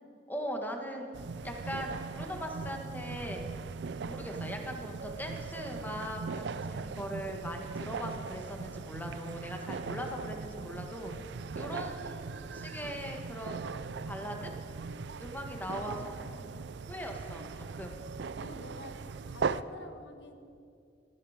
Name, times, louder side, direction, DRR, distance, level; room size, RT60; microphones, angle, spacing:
voice 1, 0.3-1.1 1.4-3.4 4.0-11.1 11.5-13.7 14.1-14.5 15.2-16.1 16.8-18.0, equal, 10° left, 3 dB, 1.6 m, -40 dB
sound 1, 1.1-19.6, right 4 dB, 70° right, 0.4 m, -39 dB
voice 2, 15.5-16.7 18.4-20.4, left 1 dB, 80° left, 6 dB, 1.3 m, -49 dB
17.5 x 14.5 x 5.1 m, 2.4 s
head